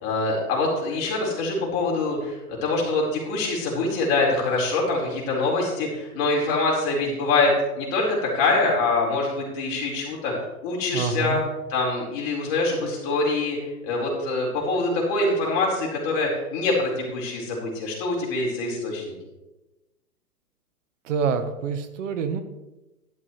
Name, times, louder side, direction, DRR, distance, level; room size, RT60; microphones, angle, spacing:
voice 1, 0.0-10.3 10.6-11.4 11.7-13.6 13.8-19.1, left 3 dB, 40° left, -2 dB, 4.7 m, -24 dB
voice 2, 10.9-11.4 21.1-22.4, right 6 dB, 55° right, 9 dB, 1.3 m, -26 dB
12.0 x 11.5 x 3.3 m, 1.0 s
hypercardioid pair, 130°, 46 cm